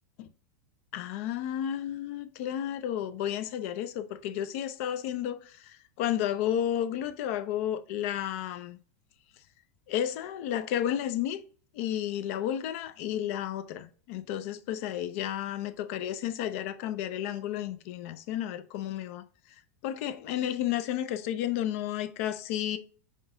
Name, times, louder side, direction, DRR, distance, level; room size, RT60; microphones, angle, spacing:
voice 1, 0.9-8.8 9.9-11.4 11.7-19.2 19.8-22.8, left 11 dB, 60° left, 0.6 m, -32 dB
5.3 x 3.8 x 2.6 m
hypercardioid pair, 100°, 8 cm